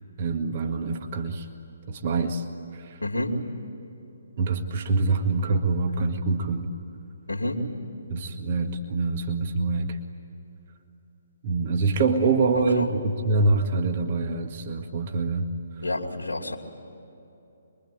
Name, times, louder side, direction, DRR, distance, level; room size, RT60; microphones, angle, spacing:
voice 1, 0.2-1.5 1.9-2.5 2.7-3.0 4.4-6.7 8.1-10.0 11.4-15.5, right 3 dB, 35° right, 5 dB, 1.9 m, -25 dB
voice 2, 3.0-3.4 6.4-6.6 7.3-7.6 12.5-12.9 15.8-16.6, left 1 dB, 70° left, -3 dB, 2.9 m, -29 dB
26.5 x 23.0 x 9.4 m, 3.0 s
figure-of-eight pair, 135°, 0 cm